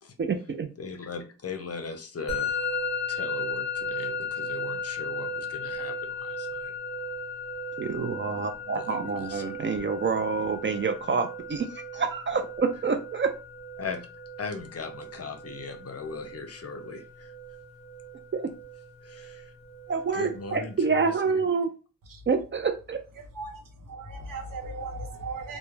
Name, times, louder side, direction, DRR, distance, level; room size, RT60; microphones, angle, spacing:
voice 1, 0.2-0.7 7.8-13.3 18.3-18.5 19.9-21.7 22.3-23.0, right 5 dB, 35° right, 0.4 m, -27 dB
voice 2, 0.8-2.7 3.1-6.7 8.8-9.4 13.8-14.1 14.4-17.3 19.0-19.5 20.1-21.4, left 4 dB, 45° left, 0.6 m, -39 dB
Musical instrument, 2.3-21.2, left 3 dB, 20° left, 0.8 m, -36 dB
voice 3, 23.3-25.6, right 3 dB, 70° right, 0.7 m, -37 dB
2.2 x 2.1 x 3.1 m
cardioid pair, 60°, 34 cm